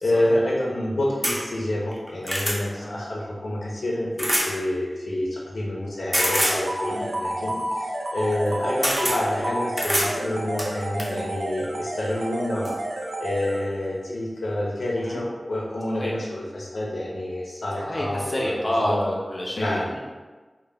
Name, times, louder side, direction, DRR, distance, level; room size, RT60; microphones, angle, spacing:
voice 1, 0.0-12.7 13.2-19.1 19.6-19.9, left 1 dB, 90° left, -4 dB, 0.4 m, -28 dB
sound 1, 1.2-1.4 1.9-2.6 4.2-4.5 6.1-6.6 8.3-8.5 8.8-9.2 9.8-10.1 10.6-11.1 12.2-12.3 12.6-12.7, equal, 10° right, 0.6 m, -24 dB
sound 2, 6.2-14.0, right 1 dB, 70° right, 0.3 m, -31 dB
voice 2, 17.8-20.0, left 1 dB, 35° left, -4 dB, 0.6 m, -29 dB
2.1 x 2.0 x 3.3 m, 1.3 s
wide cardioid pair, 50°, 0 cm